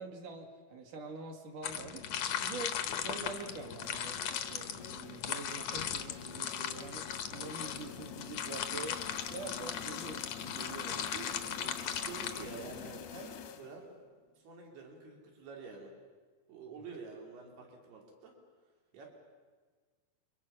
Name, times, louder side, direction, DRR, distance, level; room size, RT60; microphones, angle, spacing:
voice 1, 0.0-2.1 2.4-9.0 9.3-11.1, right 3 dB, 55° right, 2 dB, 3.6 m, -45 dB
sound 1, 1.6-13.0, left 8 dB, 70° left, 1.6 m, -38 dB
sound 2, 3.3-14.0, left 8 dB, 90° left, 3.4 m, -49 dB
voice 2, 11.1-13.9 14.4-15.9 16.5-18.3 18.9-19.1, right 4 dB, 85° right, 0 dB, 5.1 m, -48 dB
29.5 x 24.0 x 5.7 m, 1.5 s
omnidirectional pair, 4.4 m